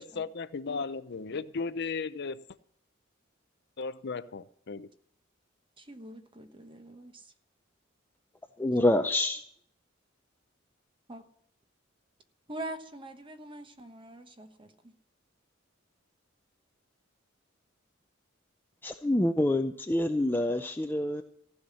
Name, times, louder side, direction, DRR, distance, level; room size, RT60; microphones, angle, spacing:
voice 1, 0.0-2.4 3.8-4.9, left 4 dB, 55° left, 0.6 m, -35 dB
voice 2, 5.8-7.3 11.1-11.2 12.5-14.9, right 1 dB, 25° right, 1.1 m, -44 dB
voice 3, 8.6-9.4 18.8-21.2, left 1 dB, 10° left, 0.5 m, -26 dB
15.0 x 5.8 x 9.9 m
head